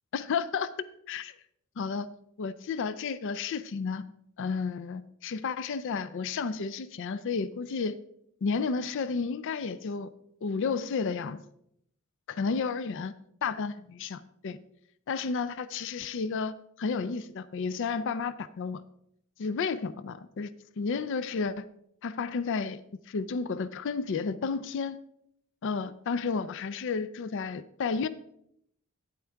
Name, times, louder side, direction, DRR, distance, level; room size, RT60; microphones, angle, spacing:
voice 1, 0.1-0.7 1.1-1.4 1.8-2.1 2.4-4.0 4.4-8.0 8.4-10.1 10.4-11.4 12.4-13.1 13.4-14.6 15.1-18.8 19.4-21.7 22.0-22.8 23.1-25.0 25.6-28.1, left 5 dB, 60° left, 15 dB, 0.4 m, -32 dB
9.9 x 8.0 x 3.4 m, 0.73 s
head